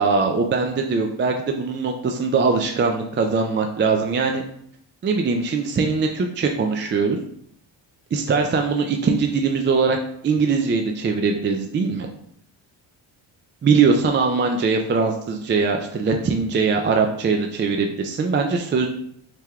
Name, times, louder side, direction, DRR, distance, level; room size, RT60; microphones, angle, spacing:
voice 1, 0.0-4.4 5.0-7.2 8.1-10.0 10.2-12.1 13.6-18.9, right 4 dB, 25° right, 3 dB, 0.4 m, -21 dB
4.7 x 3.4 x 2.3 m, 0.68 s
cardioid pair, 80°, 49 cm